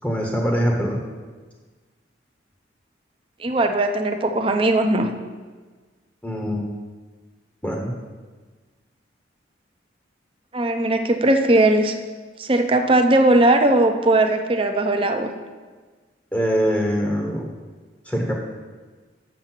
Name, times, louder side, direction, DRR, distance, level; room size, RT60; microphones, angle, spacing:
voice 1, 0.0-1.0 6.2-6.6 7.6-7.9 16.3-17.5 18.0-18.3, equal, 5° left, 0 dB, 0.9 m, -23 dB
voice 2, 3.4-5.1 10.5-12.0 12.4-15.3, right 2 dB, 30° right, 6 dB, 0.6 m, -18 dB
7.4 x 6.7 x 5.9 m, 1.4 s
head